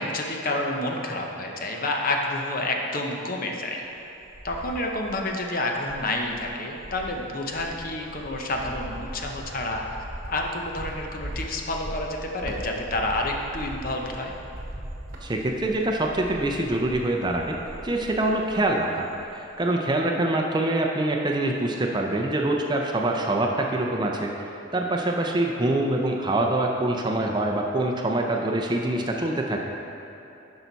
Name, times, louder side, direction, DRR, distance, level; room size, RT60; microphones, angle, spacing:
voice 1, 0.0-3.8 4.4-9.8 10.3-14.3, left 2 dB, 45° left, 1 dB, 0.8 m, -29 dB
Cricket, 3.8-5.4 5.8-18.8 19.1-19.6, right 1 dB, 45° right, 1.2 m, -40 dB
voice 2, 15.2-17.6 17.8-24.3 24.7-29.6, right 1 dB, 20° right, 1 dB, 0.5 m, -25 dB
10.5 x 5.7 x 4.0 m, 2.9 s
head